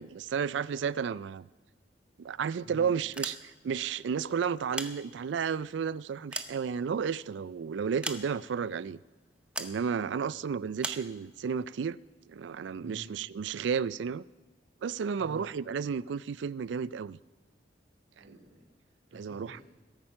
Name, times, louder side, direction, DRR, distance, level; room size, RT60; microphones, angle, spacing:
voice 1, 0.0-1.5 2.2-9.0 9.6-12.0 12.3-14.2 14.8-17.2 19.1-19.6, right 6 dB, 80° right, 0.4 m, -32 dB
voice 2, 2.6-2.9 9.9-10.4 12.8-13.1 15.2-15.5 18.2-19.6, equal, 55° right, 3.1 m, -50 dB
sound 1, 3.1-3.8 4.5-5.5 6.0-7.2 8.0-8.7 9.6-9.8 10.8-11.1, right 2 dB, 5° right, 0.7 m, -39 dB
21.0 x 8.8 x 5.7 m
head